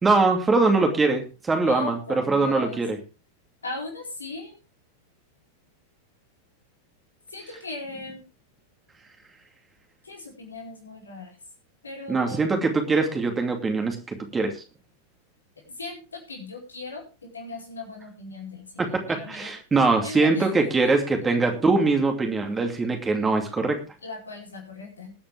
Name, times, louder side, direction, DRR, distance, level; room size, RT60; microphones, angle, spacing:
voice 1, 0.0-2.0 2.3-3.0 12.1-14.5 18.8-23.8, right 3 dB, 15° right, 4 dB, 2.6 m, -22 dB
voice 2, 1.6-2.8 3.6-4.6 7.3-8.2 10.0-11.4 11.8-12.5 15.7-19.5 20.0-20.9 24.0-25.1, left 3 dB, 75° left, -1 dB, 4.5 m, -38 dB
21.5 x 8.6 x 3.5 m, 0.32 s
figure-of-eight pair, 90°, 0 cm